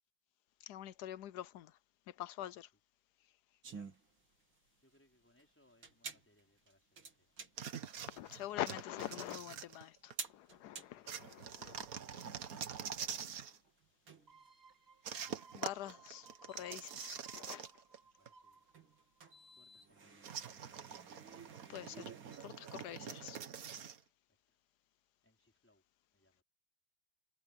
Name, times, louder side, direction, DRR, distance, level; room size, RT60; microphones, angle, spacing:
voice 1, 0.7-1.7 2.1-2.7 8.1-11.9 15.5-17.6 21.7-22.1 22.4-23.4, left 13 dB, 80° left, 0.9 m, -45 dB
sound 1, 3.6-22.4, right 5 dB, 65° right, 3.8 m, -54 dB
voice 2, 4.8-7.3 10.8-11.1 11.9-12.7 18.2-18.6 19.6-20.9 24.5-24.6 25.2-25.8 26.1-26.4, left 1 dB, 5° left, 4.8 m, -70 dB
sound 2, 7.6-10.3 11.1-13.6 15.0-18.0 18.3-18.4 20.2-24.0, right 7 dB, 50° right, 1.4 m, -45 dB
sound 3, 14.3-19.8 20.2-20.3, right 4 dB, 25° right, 3.2 m, -62 dB
omnidirectional pair, 2.3 m